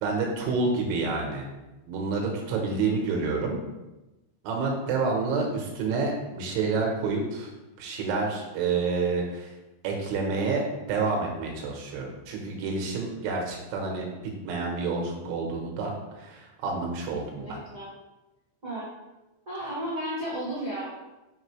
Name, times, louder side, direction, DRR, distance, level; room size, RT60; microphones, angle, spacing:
voice 1, 0.0-1.4 1.9-3.6 4.5-7.5 7.8-9.5 9.8-14.1 14.5-17.6, right 4 dB, 80° right, 0 dB, 3.4 m, -28 dB
voice 2, 17.3-17.9 18.6-18.9 19.4-20.9, right 1 dB, 40° right, -10 dB, 1.1 m, -33 dB
8.9 x 5.1 x 3.3 m, 1.0 s
omnidirectional pair, 5.7 m